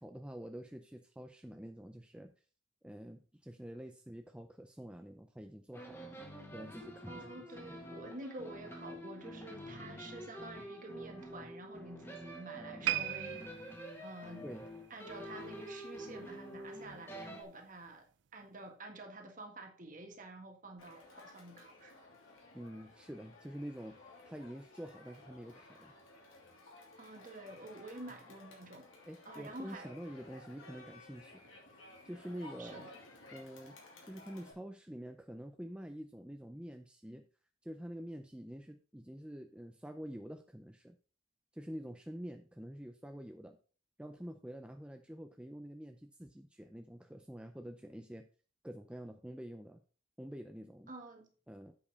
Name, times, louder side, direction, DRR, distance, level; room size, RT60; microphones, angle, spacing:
voice 1, 0.0-2.3 2.8-6.2 6.5-7.8 9.7-9.9 14.4-14.7 22.5-25.9 29.1-31.4 32.0-32.9 33.3-33.8 34.0-37.3 37.6-41.0 41.5-43.6 44.0-48.3 48.6-49.8 50.2-50.9 51.5-51.7, equal, 5° right, 0.5 m, -47 dB
sound 1, 5.7-17.4, equal, 10° left, 1.5 m, -48 dB
voice 2, 7.0-13.5 14.0-14.5 14.9-18.0 18.3-22.0 27.0-28.9 29.2-29.9 32.6-32.9 50.9-51.3, right 2 dB, 40° right, 1.6 m, -49 dB
sound 2, 12.8-16.1 16.4-16.7 17.4-17.5, right 13 dB, 65° right, 0.4 m, -40 dB
Crowd, 20.8-34.5, left 2 dB, 85° left, 2.9 m, -56 dB
8.5 x 5.2 x 5.2 m
head